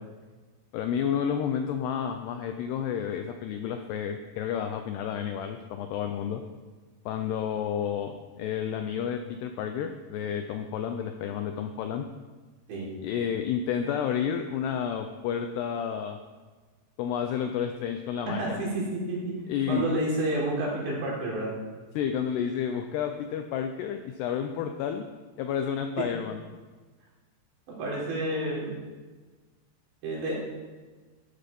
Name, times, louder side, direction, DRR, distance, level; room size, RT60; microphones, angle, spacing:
voice 1, 0.7-6.4 7.1-12.1 13.0-16.2 17.0-18.6 19.5-19.9 22.0-25.1 25.4-26.4, left 8 dB, 80° left, 6 dB, 2.4 m, -30 dB
voice 2, 18.3-19.3 19.7-21.5 26.0-26.1 27.7-28.7 30.0-30.3, right 1 dB, 65° right, -5 dB, 6.1 m, -30 dB
14.5 x 9.9 x 5.3 m, 1.3 s
omnidirectional pair, 5.5 m